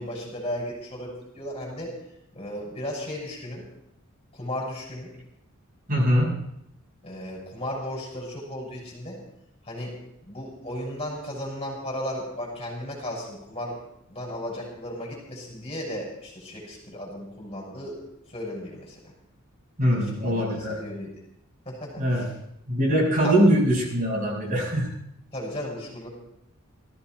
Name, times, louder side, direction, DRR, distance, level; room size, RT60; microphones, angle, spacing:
voice 1, 0.0-2.0 2.3-3.6 4.3-5.1 7.0-9.2 9.6-9.9 10.3-13.8 14.1-18.0 18.3-19.0 19.9-21.1 21.6-22.3 23.2-23.3 25.3-26.1, left 1 dB, 30° left, -2 dB, 6.4 m, -35 dB
voice 2, 5.9-6.4 19.8-20.8 22.0-22.3 22.7-24.9, equal, 40° right, -2 dB, 6.4 m, -22 dB
18.5 x 15.0 x 4.6 m, 0.78 s
head